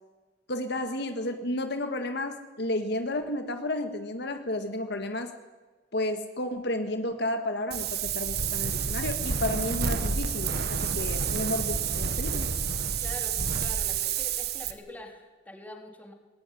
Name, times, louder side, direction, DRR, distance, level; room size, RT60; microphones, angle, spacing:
voice 1, 0.5-5.3 5.9-12.5, left 1 dB, 65° left, 7 dB, 1.8 m, -32 dB
Wind, 7.7-14.7, right 6 dB, 60° right, 1.6 m, -29 dB
voice 2, 13.0-16.1, left 1 dB, 10° left, 2 dB, 3.4 m, -44 dB
20.0 x 17.5 x 10.0 m, 1.3 s
head